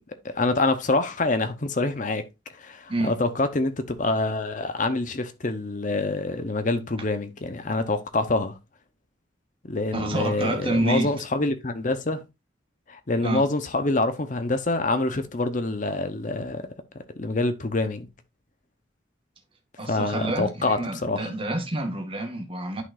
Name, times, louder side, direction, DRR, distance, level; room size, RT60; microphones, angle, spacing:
voice 1, 0.2-2.3 2.6-8.6 9.7-12.2 12.9-16.7 17.2-18.1 19.9-21.3, left 2 dB, 40° left, 0.7 m, -26 dB
voice 2, 9.9-11.1 13.2-13.4 19.8-22.8, right 2 dB, 30° right, 1.2 m, -28 dB
11.5 x 3.8 x 2.4 m
head